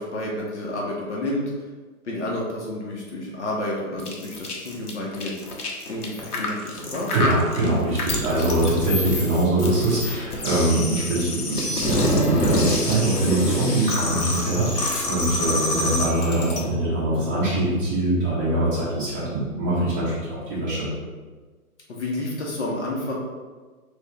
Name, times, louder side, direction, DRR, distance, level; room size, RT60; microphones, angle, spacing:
voice 1, 0.0-1.4 2.0-5.3 5.9-7.1 21.9-23.1, left 1 dB, 50° left, -3 dB, 0.9 m, -30 dB
sound 1, 4.0-16.6, left 1 dB, 85° left, 1.0 m, -26 dB
voice 2, 7.1-20.9, right 1 dB, 20° right, -10 dB, 1.3 m, -23 dB
4.3 x 2.4 x 3.0 m, 1.4 s
figure-of-eight pair, 140°, 45 cm